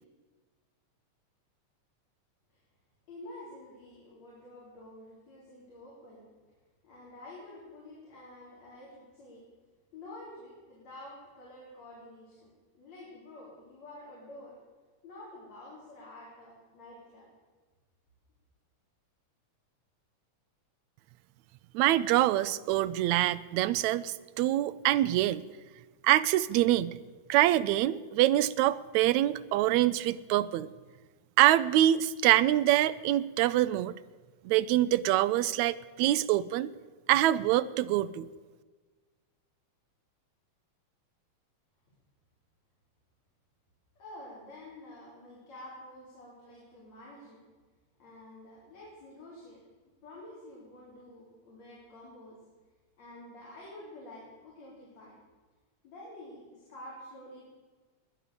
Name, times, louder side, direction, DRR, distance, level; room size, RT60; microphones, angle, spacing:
voice 1, 3.1-6.3 6.8-9.4 9.9-14.6 15.0-17.3 44.0-47.5 48.0-49.6 50.0-52.4 53.0-55.2 55.8-57.5, left 1 dB, 65° left, -6 dB, 5.0 m, -49 dB
voice 2, 21.7-25.4 26.0-27.0 27.3-30.7 31.4-33.9 34.5-36.7 37.1-38.3, right 14 dB, 80° right, 15 dB, 1.9 m, -25 dB
20.0 x 10.5 x 6.9 m, 1.4 s
omnidirectional pair, 3.3 m